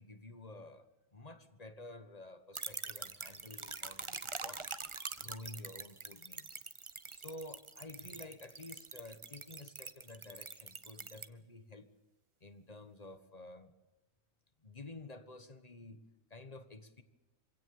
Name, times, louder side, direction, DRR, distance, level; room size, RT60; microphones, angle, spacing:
voice 1, 0.0-4.7 5.1-6.6 7.1-12.0 12.4-13.7 14.6-16.0 16.3-17.0, left 2 dB, 25° left, 11 dB, 1.5 m, -51 dB
sound 1, 2.5-11.3, right 4 dB, 25° right, 0.7 m, -45 dB
26.0 x 17.0 x 8.8 m, 1.1 s
omnidirectional pair, 1.6 m